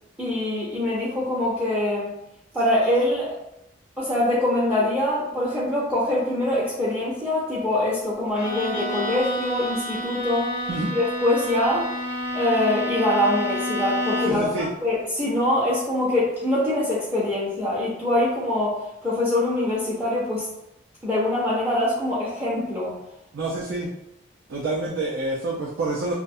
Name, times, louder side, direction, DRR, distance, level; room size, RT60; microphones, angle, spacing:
voice 1, 0.2-2.1 2.5-3.3 4.0-10.5 10.9-11.9 12.3-18.8 19.0-20.4 21.0-22.9, left 1 dB, 5° right, -7 dB, 0.5 m, -24 dB
Bowed string instrument, 8.3-14.6, left 1 dB, 55° left, 0.4 m, -29 dB
voice 2, 14.2-14.7 23.3-23.9 24.5-26.1, right 2 dB, 80° right, -4 dB, 0.4 m, -27 dB
2.4 x 2.1 x 2.6 m, 0.84 s
head